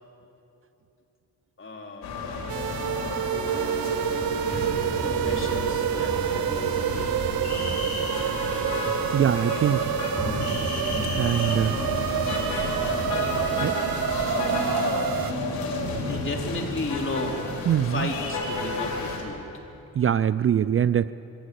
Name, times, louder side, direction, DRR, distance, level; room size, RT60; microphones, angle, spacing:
voice 1, 1.6-2.2 5.0-7.1 16.0-17.4 17.8-19.4, left 2 dB, 35° left, 1 dB, 3.6 m, -34 dB
sound 1, 2.0-19.2, left 3 dB, 90° left, 4.3 m, -31 dB
sound 2, 2.5-15.3, right 11 dB, 75° right, 0.7 m, -28 dB
sound 3, 3.3-16.2, equal, 5° left, 6.8 m, -37 dB
voice 2, 9.1-9.9 11.1-11.8 13.6-13.7 17.7-18.1 20.0-21.1, right 9 dB, 40° right, 15 dB, 0.4 m, -23 dB
23.0 x 17.0 x 8.4 m, 2.9 s
cardioid pair, 85°, 36 cm